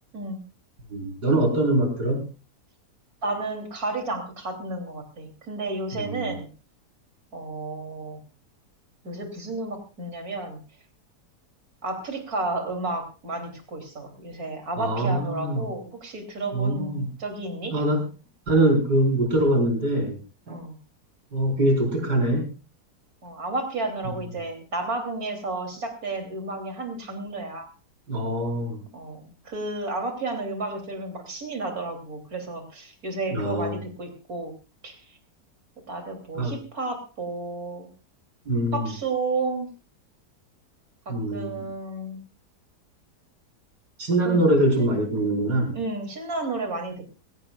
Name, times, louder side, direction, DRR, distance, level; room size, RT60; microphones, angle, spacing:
voice 1, 0.9-2.3 5.9-6.4 14.8-15.7 16.5-17.1 17.7-18.0 18.5-20.2 20.5-20.6 21.3-22.5 28.1-28.8 33.3-33.8 36.3-36.5 38.5-38.9 41.1-41.6 44.0-45.8, right 1 dB, 75° right, 1 dB, 5.4 m, -23 dB
voice 2, 3.2-6.5 7.3-8.2 9.0-10.6 11.8-17.8 20.5-20.8 23.2-27.7 28.9-34.5 34.8-35.1 35.9-37.9 38.7-39.7 41.1-42.2 44.2-44.5 44.8-44.9 45.7-47.1, right 2 dB, 60° right, 5 dB, 3.7 m, -32 dB
21.5 x 17.0 x 2.4 m, 0.32 s
omnidirectional pair, 1.8 m